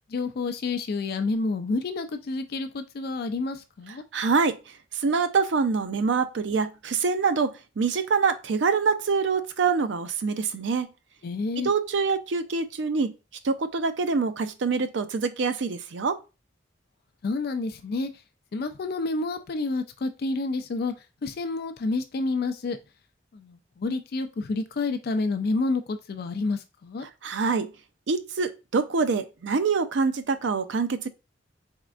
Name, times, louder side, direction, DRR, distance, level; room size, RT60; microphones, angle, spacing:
voice 1, 0.1-4.0 11.2-11.7 17.2-18.1 18.5-20.9 21.2-22.8 23.3-27.1, left 3 dB, 60° left, 0.4 m, -29 dB
voice 2, 4.1-4.6 4.9-10.9 11.6-13.1 13.4-16.2 27.2-27.7 28.1-31.1, right 4 dB, 80° right, 0.5 m, -25 dB
4.2 x 3.6 x 2.4 m
head